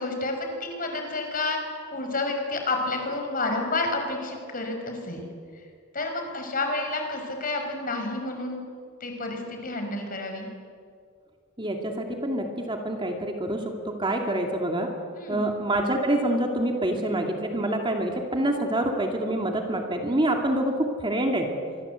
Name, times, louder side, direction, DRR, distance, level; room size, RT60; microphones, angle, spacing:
voice 1, 0.0-1.6 1.9-5.2 5.9-8.6 9.0-10.5 15.1-15.4, left 2 dB, 40° left, 3 dB, 5.3 m, -30 dB
voice 2, 11.6-14.9 15.3-21.5, right 1 dB, 25° right, 3 dB, 2.3 m, -26 dB
25.5 x 24.5 x 8.2 m, 2.2 s
head